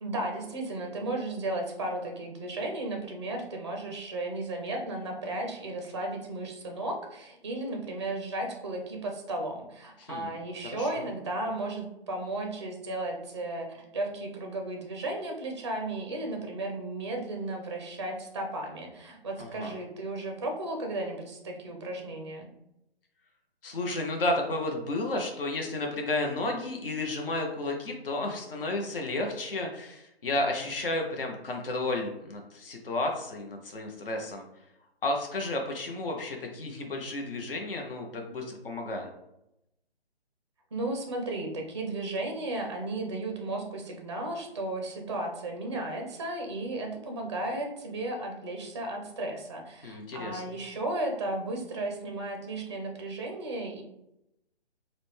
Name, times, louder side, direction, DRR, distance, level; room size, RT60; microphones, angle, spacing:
voice 1, 0.0-22.5 40.7-53.8, right 2 dB, 25° right, 2 dB, 0.5 m, -34 dB
voice 2, 10.0-10.3 10.6-11.0 19.4-19.7 23.6-34.4 35.0-39.1 49.8-50.6, left 2 dB, 60° left, 2 dB, 0.8 m, -32 dB
4.9 x 2.2 x 3.3 m, 0.84 s
figure-of-eight pair, 145°, 32 cm